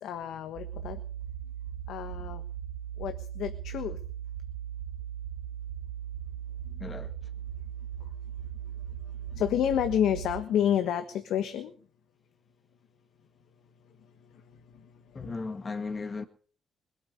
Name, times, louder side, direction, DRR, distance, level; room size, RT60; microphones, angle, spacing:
voice 1, 0.0-1.0 1.9-2.4 3.0-4.0 6.7-6.9 9.3-11.7 15.2-15.3, left 10 dB, 80° left, 1.4 m, -29 dB
sound 1, 0.5-10.4, right 10 dB, 75° right, 1.7 m, -38 dB
voice 2, 6.8-7.1 15.1-16.2, left 4 dB, 35° left, 1.9 m, -36 dB
21.5 x 8.9 x 6.9 m
cardioid pair, 90°, 0 cm